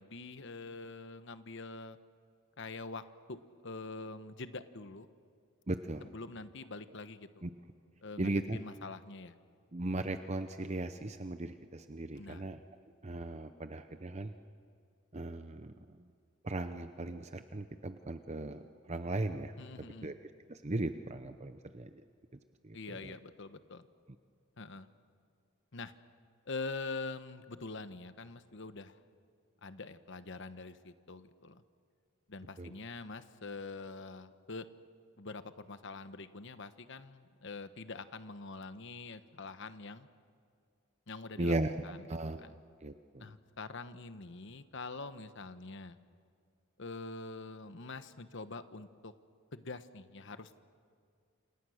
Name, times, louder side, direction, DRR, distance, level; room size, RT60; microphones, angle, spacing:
voice 1, 0.0-2.0 2.6-3.0 3.3-5.1 6.0-7.4 8.0-9.3 12.2-12.5 19.6-20.1 22.7-23.9 24.6-24.9 25.7-25.9 26.5-29.0 29.6-31.6 32.3-34.7 35.2-40.1 41.1-41.6 41.8-42.0 42.4-42.6 43.2-46.0 46.8-49.1 49.5-50.6, left 3 dB, 60° left, 11 dB, 1.1 m, -45 dB
voice 2, 5.7-6.1 7.4-7.5 8.2-8.6 9.7-12.6 13.0-14.3 15.1-16.0 16.4-22.0 22.6-23.2 32.6-32.7 41.4-42.4 42.8-43.2, right 2 dB, 30° right, 9 dB, 0.7 m, -37 dB
28.5 x 28.0 x 6.5 m, 2.2 s
head